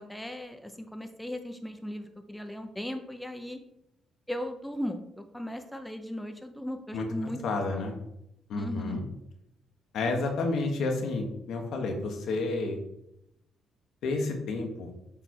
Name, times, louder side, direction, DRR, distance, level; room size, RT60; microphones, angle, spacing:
voice 1, 0.0-3.6 4.3-7.4 7.7-7.9 8.5-9.0, equal, 5° left, 6 dB, 0.7 m, -37 dB
voice 2, 7.4-7.9 8.5-9.0 9.9-12.8 14.0-14.9, left 3 dB, 75° left, 3 dB, 1.2 m, -30 dB
7.0 x 3.4 x 4.4 m, 0.81 s
cardioid pair, 90°, 0 cm